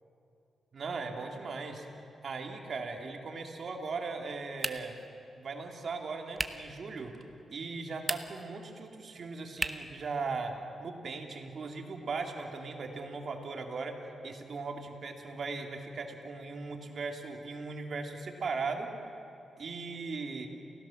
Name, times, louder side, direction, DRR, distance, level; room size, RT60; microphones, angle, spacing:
voice 1, 0.7-1.9 2.2-5.0 5.4-7.1 7.5-10.5 10.8-14.0 14.2-18.9 19.6-20.5, right 4 dB, 55° right, 3 dB, 2.7 m, -38 dB
sound 1, 4.6-5.1 6.3-6.7 7.9-8.5 9.6-10.0, right 2 dB, 20° right, 1.0 m, -35 dB
29.5 x 16.5 x 7.2 m, 2.7 s
cardioid pair, 100°, 0 cm